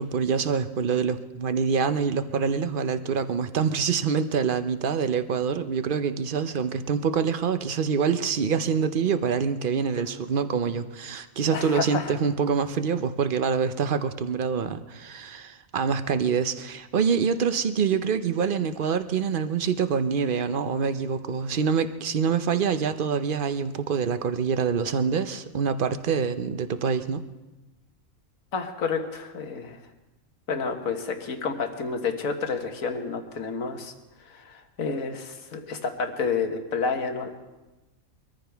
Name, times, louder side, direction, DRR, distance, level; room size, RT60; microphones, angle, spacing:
voice 1, 0.0-27.2, right 6 dB, 50° right, 11 dB, 0.7 m, -26 dB
voice 2, 11.5-12.1 28.5-29.8 30.5-33.9 34.3-37.3, left 5 dB, 75° left, 5 dB, 1.7 m, -30 dB
23.5 x 14.0 x 3.4 m, 1.1 s
omnidirectional pair, 1.4 m